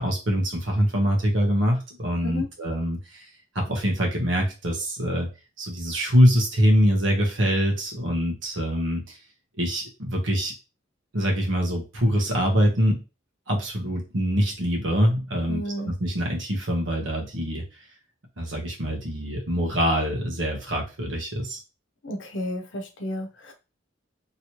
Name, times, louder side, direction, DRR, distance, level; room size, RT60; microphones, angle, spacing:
voice 1, 0.0-3.2 3.5-5.3 5.6-9.2 9.6-10.5 11.1-13.0 13.5-17.6 18.4-21.6, equal, 90° right, 0 dB, 1.1 m, -24 dB
voice 2, 15.5-15.9 22.0-23.5, left 1 dB, 75° left, 5 dB, 0.7 m, -32 dB
3.1 x 2.9 x 2.9 m, 0.31 s
head